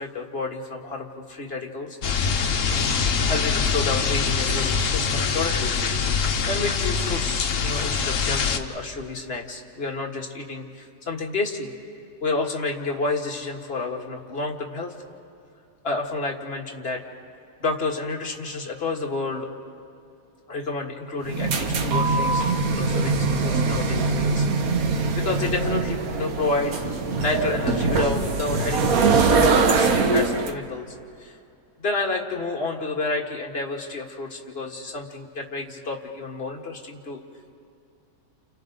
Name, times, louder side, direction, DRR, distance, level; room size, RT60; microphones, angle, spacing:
voice 1, 0.0-2.0 3.2-6.0 6.5-11.7 12.2-14.9 15.8-17.0 17.6-19.5 20.5-24.5 25.2-26.8 27.2-29.0 29.3-31.4 31.8-37.2, left 3 dB, 40° left, 1 dB, 2.0 m, -30 dB
sound 1, 2.0-8.6, left 5 dB, 55° left, 1.3 m, -24 dB
sound 2, 21.2-30.5, right 4 dB, 65° right, 1.6 m, -22 dB
30.0 x 28.5 x 3.9 m, 2.6 s
omnidirectional pair, 1.7 m